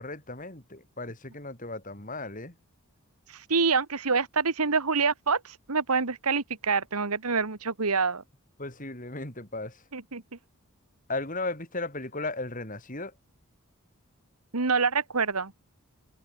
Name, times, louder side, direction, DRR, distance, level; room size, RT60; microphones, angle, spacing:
voice 1, 0.0-2.6 8.6-9.8 11.1-13.1, left 2 dB, 35° left, 5.3 m, -36 dB
voice 2, 3.3-8.2 9.9-10.2 14.5-15.5, right 4 dB, 90° right, 1.8 m, -26 dB
open air
head